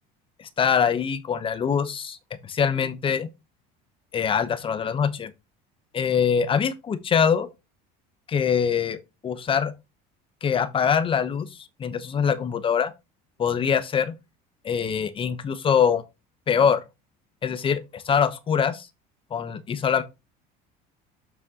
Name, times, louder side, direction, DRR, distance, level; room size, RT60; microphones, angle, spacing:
voice 1, 0.4-2.2 2.4-3.3 4.1-5.3 5.9-7.5 8.3-9.0 9.2-9.7 10.4-11.5 11.8-12.9 13.4-14.1 14.6-16.0 16.5-16.8 17.4-18.9 19.3-20.0, left 7 dB, 25° left, 0.9 m, -23 dB
7.2 x 6.2 x 2.9 m
cardioid pair, 140°, 20 cm